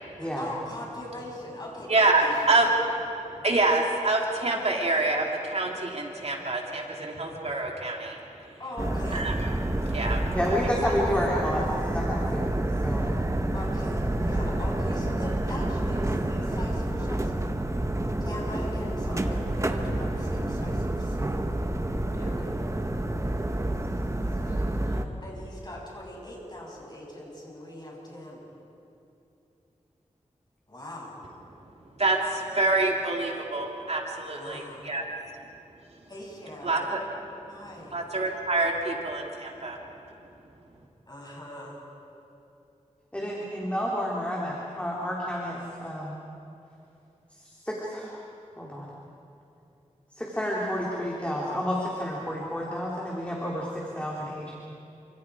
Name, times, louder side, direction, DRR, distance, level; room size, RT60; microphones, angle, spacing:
voice 1, 0.2-2.9 8.6-9.3 13.5-17.6 18.2-21.4 22.1-22.5 24.4-28.4 30.7-31.2 34.3-34.9 36.1-37.0 37.5-38.0 41.1-41.8, left 1 dB, 30° left, -4 dB, 7.7 m, -41 dB
voice 2, 1.9-2.7 3.4-8.2 9.1-9.4 9.9-10.2 32.0-35.0 36.6-37.0 37.9-39.8, right 2 dB, 55° right, 0 dB, 2.9 m, -26 dB
sound 1, 8.8-25.1, right 1 dB, 25° right, 1.4 m, -28 dB
voice 3, 10.3-13.1 43.1-46.2 47.3-48.2 48.6-48.9 50.1-54.5, equal, 10° left, -4 dB, 3.4 m, -30 dB
28.5 x 26.5 x 4.9 m, 2.8 s
wide cardioid pair, 85°, 13 cm